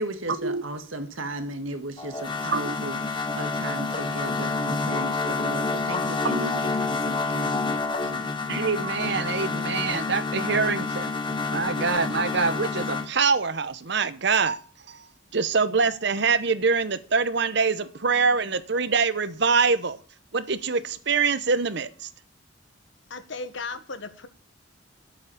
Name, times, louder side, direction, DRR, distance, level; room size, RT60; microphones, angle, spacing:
voice 1, 0.0-8.3, right 1 dB, 80° right, 1.8 m, -36 dB
sound 1, 2.0-13.1, left 3 dB, 25° left, 1.0 m, -28 dB
voice 2, 6.2-6.6 8.5-11.1 11.5-14.6 14.9-15.0 15.3-20.0 20.3-22.1, right 4 dB, 60° right, 0.9 m, -24 dB
voice 3, 23.1-24.3, left 3 dB, 65° left, 1.4 m, -36 dB
8.6 x 7.3 x 8.5 m
head